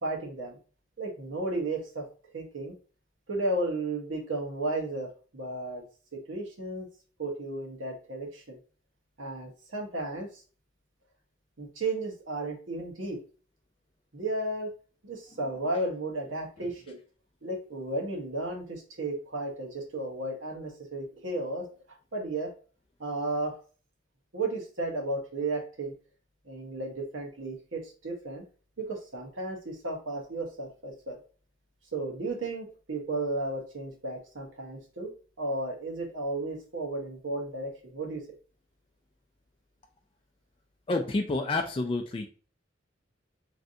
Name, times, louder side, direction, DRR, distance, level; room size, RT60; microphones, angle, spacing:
voice 1, 0.0-0.6 1.0-2.1 2.3-2.7 3.3-5.8 6.1-6.9 7.2-8.6 9.2-10.4 11.6-13.2 14.1-14.7 15.0-17.0 17.4-21.7 22.1-22.5 23.0-23.6 24.3-25.9 26.4-28.4 28.8-31.2 31.9-35.1 35.4-38.2, right 2 dB, 85° right, 0 dB, 1.0 m, -34 dB
voice 2, 40.9-42.3, left 2 dB, 25° left, 3 dB, 0.3 m, -29 dB
3.2 x 2.6 x 2.6 m, 0.37 s
head